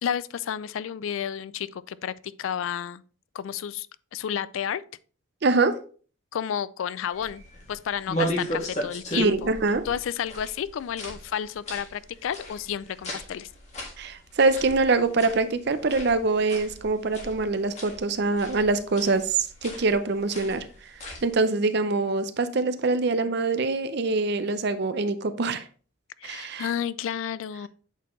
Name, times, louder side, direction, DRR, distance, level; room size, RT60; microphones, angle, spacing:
voice 1, 0.0-2.1 2.4-3.0 3.3-4.8 6.3-9.5 9.8-13.5 26.2-27.7, left 8 dB, 70° left, 0.3 m, -31 dB
voice 2, 5.4-5.8 9.2-9.8 14.0-20.7 21.2-25.6 26.2-26.7, right 3 dB, 55° right, 0.6 m, -24 dB
sound 1, 7.1-21.3, equal, 35° left, 1.7 m, -37 dB
8.1 x 4.3 x 3.1 m
head